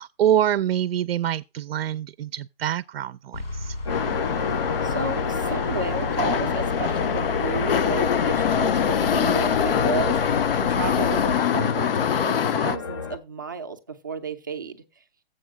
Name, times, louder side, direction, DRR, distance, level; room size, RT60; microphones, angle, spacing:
voice 1, 0.0-3.7, right 11 dB, 75° right, 0.5 m, -25 dB
sound 1, 3.3-11.4, left 2 dB, 90° left, 3.2 m, -33 dB
sound 2, 3.9-12.8, left 8 dB, 70° left, 0.7 m, -24 dB
sound 3, 3.9-13.2, left 5 dB, 30° left, 0.6 m, -31 dB
voice 2, 4.8-14.8, right 5 dB, 20° right, 0.4 m, -32 dB
7.8 x 5.5 x 6.1 m
hypercardioid pair, 175°, 29 cm